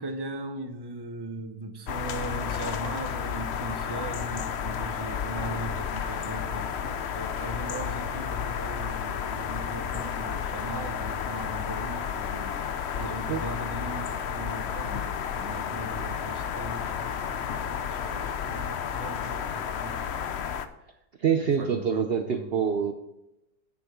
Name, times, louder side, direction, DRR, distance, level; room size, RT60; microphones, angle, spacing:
voice 1, 0.0-20.0 21.6-22.8, right 2 dB, 20° right, 5 dB, 0.6 m, -39 dB
sound 1, 1.9-20.7, left 8 dB, 90° left, 0.5 m, -32 dB
voice 2, 21.2-22.9, right 7 dB, 75° right, 5 dB, 0.5 m, -25 dB
10.5 x 8.5 x 3.8 m, 0.90 s
omnidirectional pair, 2.0 m